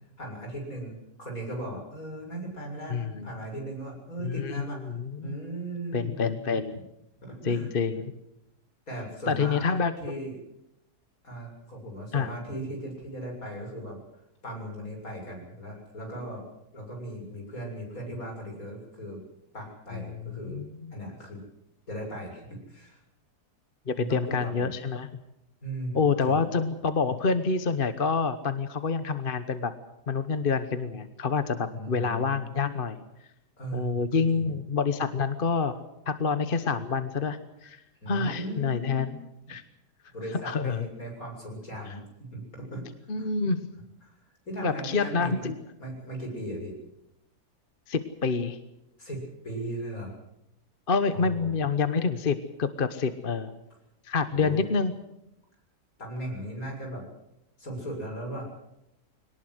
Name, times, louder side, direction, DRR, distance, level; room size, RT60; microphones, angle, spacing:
voice 1, 0.2-6.4 6.7-6.8 7.2-7.7 8.9-9.7 10.0-10.3 11.2-14.0 14.4-16.4 16.7-19.2 19.5-20.6 20.9-21.4 21.9-23.0 24.0-24.7 25.6-26.4 31.7-32.3 33.6-34.0 34.3-34.5 38.0-39.2 40.1-42.8 43.2-43.3 44.5-45.5 45.8-46.8 49.0-50.1 51.1-51.5 54.3-54.6 56.0-57.0 57.6-58.5, right 1 dB, 60° left, 1 dB, 7.6 m, -38 dB
voice 2, 2.9-3.4 4.2-5.4 5.9-6.8 7.4-8.1 9.3-9.9 12.1-12.3 19.9-20.7 23.9-25.1 25.9-29.7 30.1-33.0 33.7-39.2 39.5-39.6 40.4-40.9 41.9-42.0 43.1-43.7 44.6-45.6 47.9-48.6 50.9-53.5 54.0-54.9, left 5 dB, 40° left, 11 dB, 1.1 m, -27 dB
22.5 x 19.0 x 8.0 m, 0.84 s
omnidirectional pair, 1.7 m